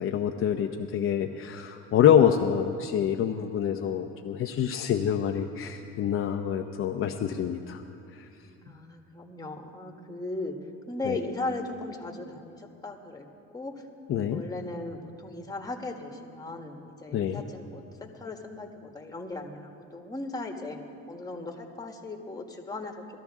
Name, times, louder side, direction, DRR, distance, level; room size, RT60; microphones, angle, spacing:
voice 1, 0.0-7.8 8.1-8.3 11.1-11.2 14.1-14.4 17.1-17.4, left 9 dB, 45° left, 4 dB, 0.7 m, -26 dB
voice 2, 8.6-10.5 10.9-13.3 13.5-13.7 14.3-20.8 21.1-22.9, left 2 dB, 10° left, 3 dB, 1.4 m, -37 dB
19.5 x 13.0 x 3.6 m, 2.5 s
cardioid pair, 105°, 30 cm